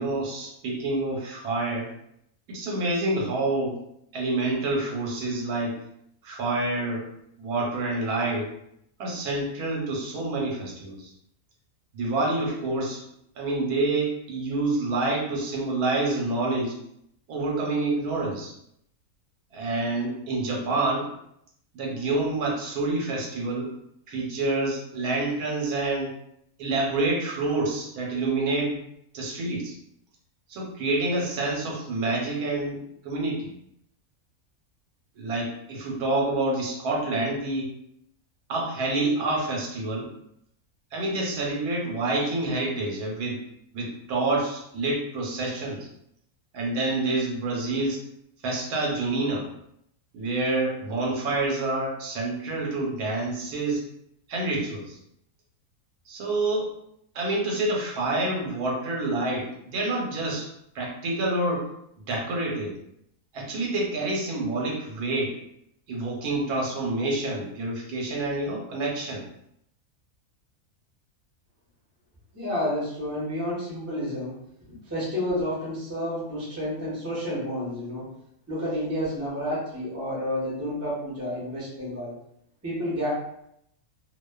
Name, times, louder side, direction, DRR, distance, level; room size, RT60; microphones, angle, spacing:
voice 1, 0.0-1.9 2.5-3.8 4.1-5.8 6.2-7.1 7.4-8.5 9.0-11.1 11.9-13.0 13.4-16.8 17.3-18.5 19.5-21.1 21.7-23.7 24.1-26.1 26.6-28.8 29.1-29.7 30.5-32.8 33.0-33.5 35.2-37.7 38.5-40.1 40.9-43.4 43.7-45.9 46.5-48.0 48.4-49.5 50.1-53.8 54.3-55.0 56.1-56.7 57.1-60.5 60.7-61.7 62.1-62.7 63.3-65.4 65.9-69.2, right 2 dB, 85° right, -2 dB, 1.2 m, -27 dB
voice 2, 72.3-74.3 74.6-78.0 78.5-82.1 82.6-83.1, equal, 15° right, -7 dB, 0.8 m, -30 dB
2.4 x 2.4 x 2.2 m, 0.75 s
omnidirectional pair, 1.6 m